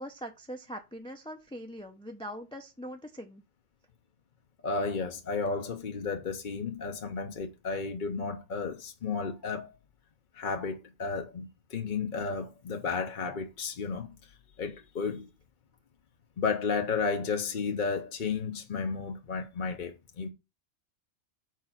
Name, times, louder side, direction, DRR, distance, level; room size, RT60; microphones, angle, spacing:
voice 1, 0.0-3.4, equal, 5° left, 0.6 m, -42 dB
voice 2, 4.6-9.7 10.3-14.1 14.6-15.3 16.4-20.3, left 5 dB, 45° left, 0.9 m, -33 dB
5.0 x 4.6 x 5.7 m
omnidirectional pair, 1.2 m